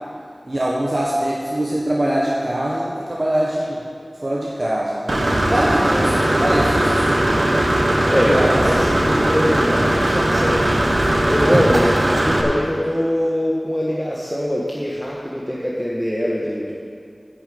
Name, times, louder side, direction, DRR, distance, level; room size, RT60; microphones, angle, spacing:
voice 1, 0.4-3.8 4.2-5.2 5.5-7.7 8.3-8.6, right 1 dB, 45° right, -5 dB, 1.3 m, -23 dB
Engine / Mechanisms, 5.1-12.4, right 1 dB, 65° right, 1.3 m, -18 dB
voice 2, 8.1-16.7, equal, 5° left, -5 dB, 1.4 m, -22 dB
8.4 x 7.1 x 8.6 m, 2.3 s
wide cardioid pair, 50°, 0 cm